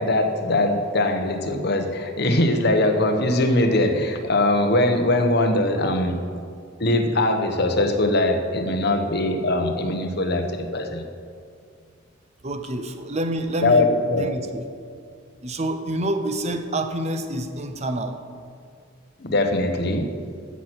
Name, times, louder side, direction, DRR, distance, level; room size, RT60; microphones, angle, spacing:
voice 1, 0.0-6.3 6.8-11.0 13.6-14.3 19.2-20.1, left 2 dB, 50° left, 5 dB, 1.0 m, -21 dB
voice 2, 12.4-14.7 15.4-18.2, right 1 dB, 30° right, 8 dB, 0.7 m, -27 dB
14.5 x 6.1 x 6.0 m, 2.2 s
head